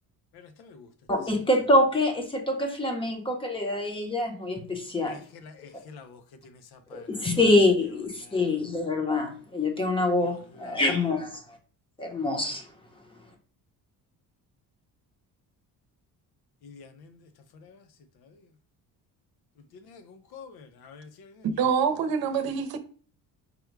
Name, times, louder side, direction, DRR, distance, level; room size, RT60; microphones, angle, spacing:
voice 1, 0.3-0.9 5.1-7.4 8.2-8.5 10.2-10.8 16.6-17.8 18.2-18.4 19.7-21.5, left 5 dB, 80° left, 0.8 m, -49 dB
voice 2, 1.1-5.2 6.9-11.4 12.0-12.6, left 2 dB, 15° left, 0.8 m, -25 dB
voice 3, 21.4-22.8, right 6 dB, 70° right, 0.8 m, -25 dB
5.3 x 2.2 x 4.6 m
cardioid pair, 155°, 37 cm